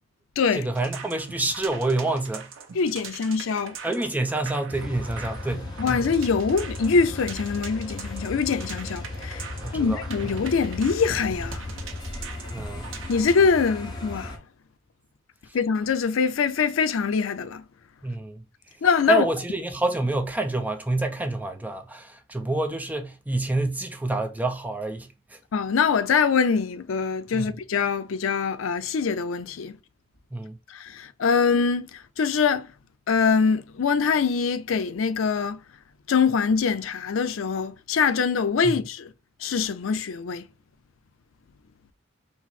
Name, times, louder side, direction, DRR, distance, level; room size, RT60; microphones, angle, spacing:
voice 1, 0.5-2.5 3.8-6.1 9.5-10.3 12.5-12.9 18.0-18.4 19.1-25.4 27.3-27.5 30.3-30.6 38.6-38.7, right 2 dB, 10° right, 0.5 m, -28 dB
sound 1, 0.7-13.4, right 6 dB, 75° right, 0.7 m, -42 dB
voice 2, 2.7-3.8 5.8-9.5 9.7-11.7 13.1-14.3 15.5-17.6 18.8-19.3 25.5-29.8 30.7-32.7 33.1-35.6 36.1-39.1 39.4-40.5, left 5 dB, 85° left, 0.5 m, -24 dB
sound 2, 4.7-14.4, left 2 dB, 20° left, 0.9 m, -36 dB
4.2 x 2.0 x 4.3 m
head